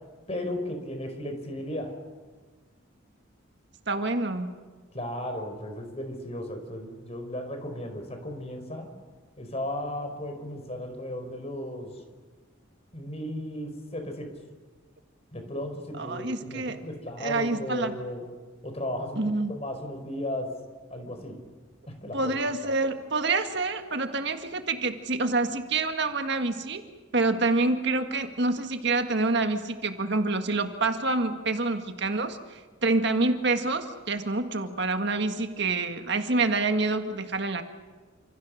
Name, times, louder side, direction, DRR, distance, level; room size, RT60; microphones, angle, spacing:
voice 1, 0.3-1.9 4.9-8.9 9.4-11.9 12.9-14.3 15.3-18.2 18.6-20.5 20.9-21.4 21.9-22.3, left 1 dB, 30° left, 5 dB, 4.8 m, -35 dB
voice 2, 3.9-4.5 15.9-16.8 17.2-17.9 19.1-19.5 22.1-26.8 27.1-37.6, right 3 dB, 55° right, 7 dB, 1.8 m, -27 dB
29.5 x 27.0 x 6.5 m, 1.4 s
head